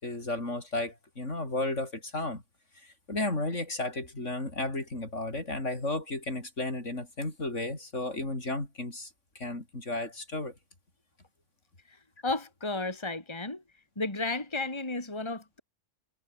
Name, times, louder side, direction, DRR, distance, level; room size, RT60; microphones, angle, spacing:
voice 1, 0.0-2.4 3.1-9.1 9.4-10.5, left 2 dB, 70° left, 5.7 m, -33 dB
voice 2, 12.2-13.6 14.0-15.6, left 2 dB, 20° left, 2.6 m, -33 dB
omnidirectional pair, 1.3 m